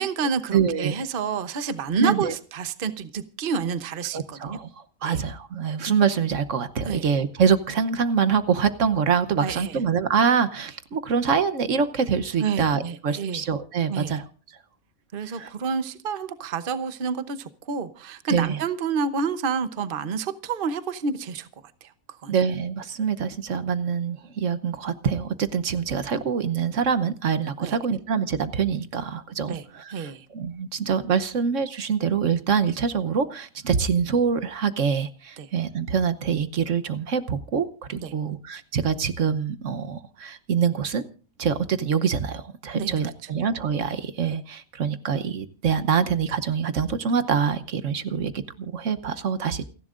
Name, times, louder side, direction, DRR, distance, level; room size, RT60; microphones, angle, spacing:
voice 1, 0.0-4.6 5.0-5.2 6.8-7.0 9.4-9.8 12.4-13.4 13.9-14.2 15.1-21.5 21.8-21.9 22.2-22.3 27.6-27.7 29.5-29.6 29.9-30.3 35.4-35.5 38.0-38.1 42.7-42.9, right 5 dB, 45° right, 12 dB, 1.0 m, -29 dB
voice 2, 0.5-1.0 2.0-2.3 4.1-14.6 15.2-15.5 18.3-18.6 22.3-41.0 41.4-49.6, right 6 dB, 65° right, 11 dB, 1.3 m, -25 dB
28.5 x 11.0 x 2.5 m, 0.39 s
omnidirectional pair, 1.4 m